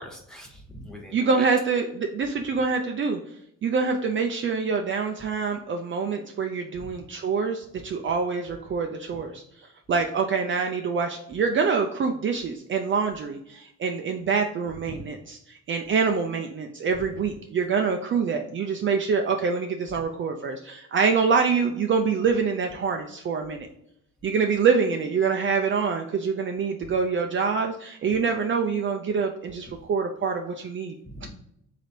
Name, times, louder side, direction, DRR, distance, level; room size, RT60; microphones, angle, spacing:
voice 1, 0.0-1.4 6.8-6.9 14.9-15.0 31.0-31.3, equal, ahead, 0 dB, 1.3 m, -42 dB
voice 2, 1.1-3.2 3.6-9.4 9.9-23.7 24.2-30.9 31.2-31.3, right 5 dB, 40° right, 4 dB, 0.5 m, -25 dB
3.9 x 3.2 x 4.3 m, 0.77 s
cardioid pair, 90°, 30 cm